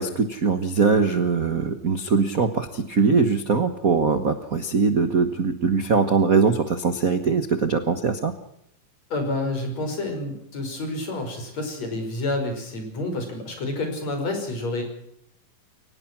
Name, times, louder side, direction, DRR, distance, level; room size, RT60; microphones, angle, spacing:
voice 1, 0.0-8.3, right 5 dB, 60° right, 9 dB, 0.8 m, -21 dB
voice 2, 9.1-14.8, left 2 dB, 50° left, 5 dB, 6.5 m, -29 dB
23.5 x 19.0 x 6.1 m, 0.74 s
omnidirectional pair, 3.8 m